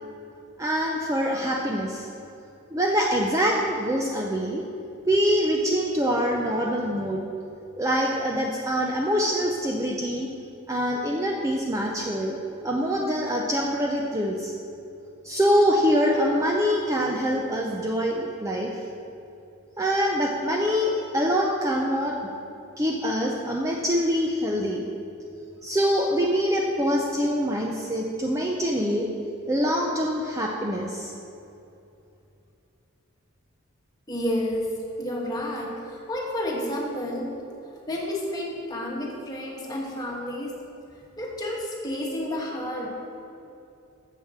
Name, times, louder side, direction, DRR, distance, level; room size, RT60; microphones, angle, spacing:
voice 1, 0.6-2.1 2.7-4.6 5.0-7.2 7.8-10.3 10.7-12.4 12.6-14.5 15.2-18.8 19.8-22.2 22.8-24.8 25.6-29.1 29.5-31.1, equal, 15° right, -1 dB, 0.5 m, -24 dB
voice 2, 34.1-37.4 37.9-40.6 41.2-43.0, left 1 dB, 20° left, -2 dB, 1.4 m, -30 dB
7.3 x 6.9 x 6.4 m, 2.7 s
head